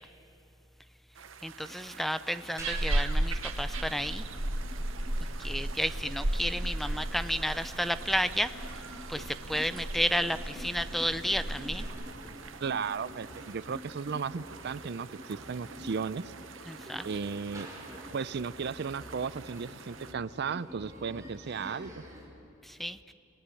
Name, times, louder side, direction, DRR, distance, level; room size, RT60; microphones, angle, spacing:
sound 1, 1.1-20.1, right 6 dB, 70° right, 1.0 m, -49 dB
voice 1, 1.4-4.2 5.4-8.5 9.1-11.9 16.7-17.1 22.6-23.0, equal, ahead, 12 dB, 0.5 m, -32 dB
sound 2, 2.4-22.3, equal, 15° right, 4.7 m, -48 dB
sound 3, 2.6-11.8, right 1 dB, 90° right, 1.6 m, -34 dB
voice 2, 12.6-16.2 17.0-17.7 18.1-22.0, right 5 dB, 55° right, 17 dB, 0.5 m, -35 dB
27.5 x 18.5 x 8.4 m, 2.9 s
head